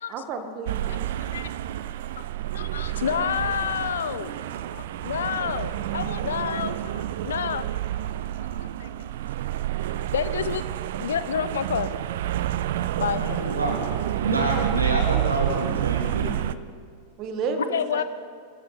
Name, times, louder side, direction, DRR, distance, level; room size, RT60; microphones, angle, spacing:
voice 1, 0.1-1.0 17.2-18.0, right 5 dB, 40° right, 6 dB, 1.7 m, -31 dB
sound 1, 0.7-16.5, right 12 dB, 55° right, 0.5 m, -29 dB
voice 2, 2.5-4.3 4.7-7.6 8.4-8.9 10.1-10.6 11.0-11.9 13.0-13.2 17.7-18.0, left 8 dB, 65° left, 14 dB, 0.7 m, -29 dB
voice 3, 13.2-13.8 14.2-16.3, right 1 dB, 80° right, 0 dB, 3.2 m, -27 dB
22.5 x 14.0 x 4.3 m, 2.2 s
figure-of-eight pair, 90°, 0 cm